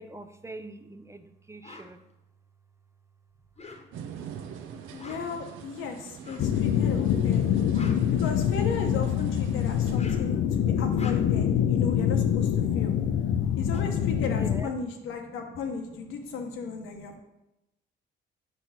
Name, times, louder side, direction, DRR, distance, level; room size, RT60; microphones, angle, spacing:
voice 1, 0.0-2.0 13.4-13.6 14.3-14.7 15.5-15.6 16.1-16.2 16.5-17.2, right 2 dB, 15° right, 10 dB, 0.4 m, -45 dB
sound 1, 1.6-1.9 3.4-4.2 4.8-5.4 6.2-6.6 7.5-8.8 9.8-10.4 10.8-11.5 13.0-13.1 13.4-15.1, left 3 dB, 30° left, 1.0 m, -46 dB
sound 2, 3.9-10.0, right 8 dB, 85° right, 0.7 m, -45 dB
voice 2, 4.9-7.6 8.1-12.9 13.6-17.2, left 5 dB, 90° left, 4 dB, 1.0 m, -36 dB
sound 3, 6.4-14.6, left 9 dB, 75° left, 0.5 m, -25 dB
5.2 x 4.5 x 5.8 m, 0.92 s
cardioid pair, 90°, 20 cm